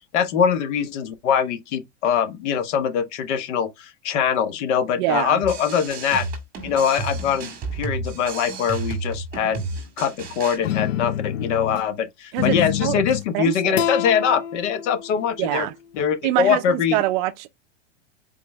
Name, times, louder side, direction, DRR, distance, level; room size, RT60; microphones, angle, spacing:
voice 1, 0.1-6.2 6.6-9.6 10.0-15.7 16.0-17.0, left 7 dB, 70° left, 1.2 m, -23 dB
voice 2, 5.0-5.4 12.3-13.0 13.3-13.9 15.4-15.7 16.2-17.5, right 16 dB, 45° right, 0.4 m, -24 dB
sound 1, 5.4-10.6, right 3 dB, 25° right, 1.8 m, -32 dB
sound 2, 10.6-11.9 12.4-13.3 13.8-16.0, left 11 dB, 90° left, 0.5 m, -27 dB
4.3 x 3.1 x 3.4 m
supercardioid pair, 135°, 36 cm